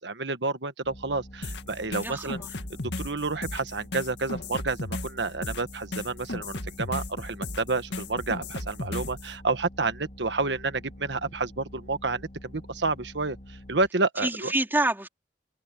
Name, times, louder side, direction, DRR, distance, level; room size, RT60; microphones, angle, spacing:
voice 1, 0.0-2.4 2.7-14.5, right 3 dB, 80° right, 1.4 m, -30 dB
sound 1, 0.8-13.9, left 1 dB, 50° left, 2.5 m, -47 dB
sound 2, 1.4-9.3, left 2 dB, 75° left, 2.1 m, -35 dB
voice 2, 2.0-2.5 14.2-15.1, right 2 dB, 10° right, 3.9 m, -27 dB
head